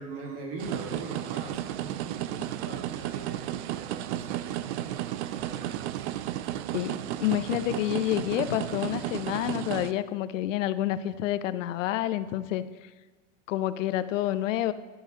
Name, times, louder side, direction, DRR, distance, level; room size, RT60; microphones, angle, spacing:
voice 1, 0.0-6.0, right 3 dB, 35° right, 1 dB, 1.5 m, -42 dB
sound 1, 0.6-9.9, right 12 dB, 60° right, 0.5 m, -33 dB
voice 2, 6.7-12.9 13.5-14.7, left 13 dB, 80° left, 14 dB, 0.6 m, -29 dB
11.0 x 10.0 x 2.8 m, 1.3 s
supercardioid pair, 150°, 38 cm